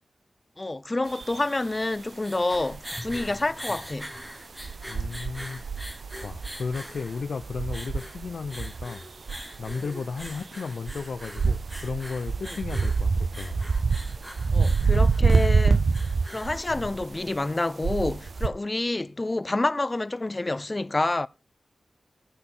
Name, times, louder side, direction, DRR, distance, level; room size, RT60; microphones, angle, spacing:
voice 1, 0.6-4.1 14.5-15.8 16.3-21.3, left 2 dB, 25° left, 0.4 m, -28 dB
sound 1, 1.1-1.8 2.5-2.8 4.6-6.9 7.2-9.0 9.3-9.8 10.1-10.4 10.9-16.6 17.0-17.2 17.8-18.5, right 4 dB, 55° right, 0.4 m, -26 dB
sound 2, 2.1-17.4, equal, 10° right, 1.9 m, -42 dB
voice 2, 4.9-5.6 6.2-9.0 9.6-13.6, left 4 dB, 70° left, 0.6 m, -34 dB
17.0 x 5.9 x 3.8 m
wide cardioid pair, 140°, 0 cm